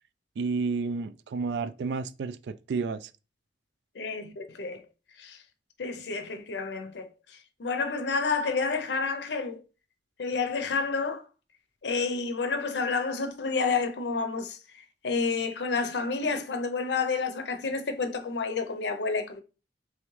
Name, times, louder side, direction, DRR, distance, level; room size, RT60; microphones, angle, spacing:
voice 1, 0.4-3.1, right 4 dB, 75° right, 0.3 m, -31 dB
voice 2, 3.9-4.8 5.2-5.4 5.8-9.6 10.2-11.3 11.8-14.6 15.0-19.4, left 4 dB, 80° left, 0.6 m, -30 dB
3.5 x 3.2 x 3.1 m
head